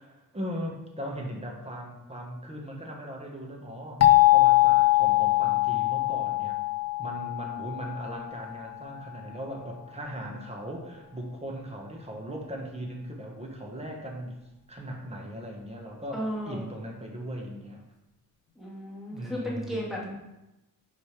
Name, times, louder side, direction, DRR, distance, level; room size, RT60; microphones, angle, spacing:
voice 1, 0.0-6.5 7.0-14.4 14.7-17.8 19.1-19.9, equal, 15° right, 0 dB, 1.5 m, -38 dB
sound 1, 4.0-8.7, left 18 dB, 45° left, 0.6 m, -22 dB
voice 2, 16.1-16.7 18.6-20.1, equal, ahead, -5 dB, 2.2 m, -34 dB
5.3 x 5.1 x 5.0 m, 0.94 s
cardioid pair, 105°, 36 cm